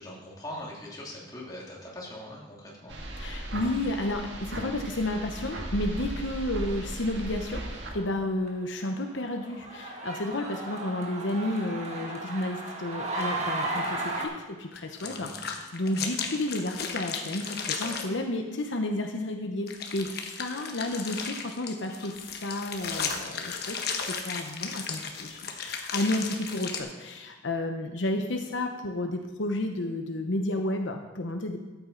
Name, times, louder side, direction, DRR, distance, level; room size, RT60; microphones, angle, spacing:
voice 1, 0.0-3.0 15.0-15.3, left 1 dB, 20° left, -4 dB, 2.6 m, -41 dB
sound 1, 2.9-7.9, right 1 dB, 70° right, 1.7 m, -36 dB
voice 2, 3.2-7.6 7.9-31.6, left 1 dB, 80° left, 4 dB, 0.9 m, -32 dB
sound 2, 7.7-8.2 8.5-8.6 9.1-14.3, right 2 dB, 35° right, 1.7 m, -34 dB
sound 3, 14.8-18.1 19.7-26.8, left 6 dB, 55° left, 1.2 m, -35 dB
13.5 x 8.7 x 3.9 m, 1.3 s
head